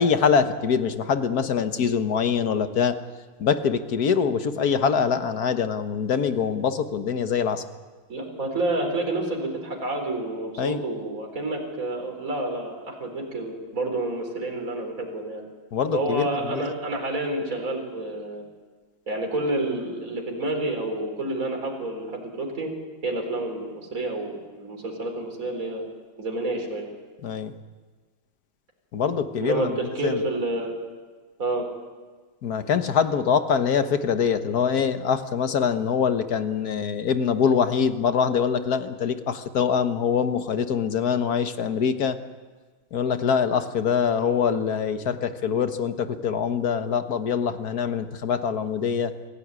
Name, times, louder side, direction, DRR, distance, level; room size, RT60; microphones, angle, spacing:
voice 1, 0.0-3.0 3.4-7.6 10.6-10.8 15.7-16.6 27.2-27.5 28.9-30.2 32.4-42.2 42.9-49.1, left 6 dB, 50° left, 9 dB, 1.6 m, -24 dB
voice 2, 8.1-15.4 15.9-18.4 19.1-22.7 23.0-25.8 26.2-26.9 29.4-29.7 29.9-30.7 31.4-31.6, right 2 dB, 40° right, 1 dB, 4.6 m, -29 dB
25.5 x 16.5 x 9.7 m, 1.4 s
omnidirectional pair, 2.2 m